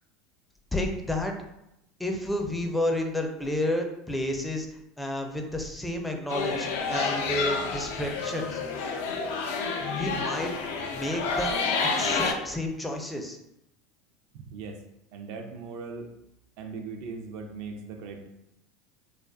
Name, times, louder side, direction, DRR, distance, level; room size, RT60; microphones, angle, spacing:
voice 1, 0.7-1.3 2.0-4.7 5.0-8.6 10.0-10.5 10.9-11.5 11.8-13.4, left 1 dB, 10° left, 3 dB, 0.4 m, -30 dB
sound 1, 6.3-12.3, left 4 dB, 80° left, 0.3 m, -29 dB
voice 2, 14.3-14.8 15.1-16.1 16.6-18.3, right 4 dB, 65° right, 4 dB, 0.4 m, -39 dB
2.4 x 2.3 x 2.3 m, 0.83 s
hypercardioid pair, 95°, 0 cm